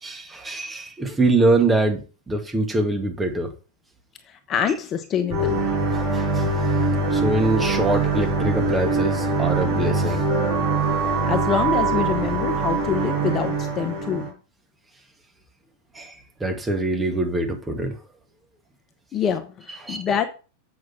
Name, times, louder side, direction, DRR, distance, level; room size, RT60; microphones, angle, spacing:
voice 1, 0.0-3.5 5.9-6.5 7.1-10.2 15.9-18.0 19.8-20.0, right 2 dB, 15° right, 2.2 m, -24 dB
voice 2, 4.3-5.6 11.0-14.3 19.1-20.2, left 8 dB, 30° left, 1.1 m, -26 dB
sound 1, 5.3-14.3, right 3 dB, 40° right, 5.4 m, -23 dB
7.7 x 6.5 x 5.9 m
figure-of-eight pair, 90°, 0 cm